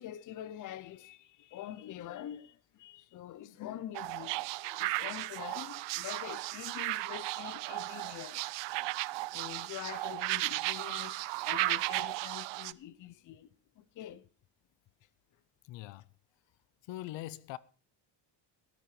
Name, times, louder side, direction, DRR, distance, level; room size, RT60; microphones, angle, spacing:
voice 1, 0.0-2.5 2.8-4.4 4.8-8.4 9.3-13.5 13.8-14.2, left 12 dB, 45° left, 0.7 m, -45 dB
sound 1, 3.9-12.7, right 20 dB, 75° right, 0.6 m, -35 dB
voice 2, 15.6-16.1 16.9-17.6, left 15 dB, 75° left, 0.8 m, -42 dB
14.0 x 12.0 x 4.8 m
cardioid pair, 160°, 44 cm